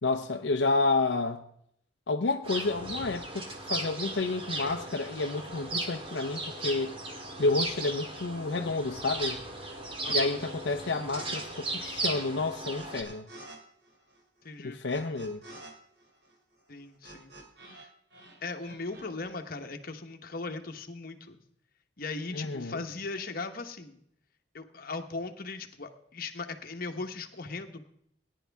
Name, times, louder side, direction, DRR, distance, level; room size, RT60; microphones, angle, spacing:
voice 1, 0.0-1.4 2.1-7.0 7.4-9.4 10.1-13.3 14.6-15.4 22.3-22.8, left 3 dB, 80° left, 0.7 m, -30 dB
sound 1, 2.4-13.0, right 2 dB, 30° right, 1.7 m, -36 dB
voice 2, 10.0-10.4 14.4-14.8 16.7-17.3 17.7-17.9 18.4-21.4 22.0-24.0 24.5-27.8, left 3 dB, 55° left, 1.2 m, -38 dB
sound 2, 11.1-11.4 11.7-13.6 13.8-17.9 18.1-19.3, right 2 dB, 65° right, 2.8 m, -49 dB
18.0 x 10.5 x 3.5 m
head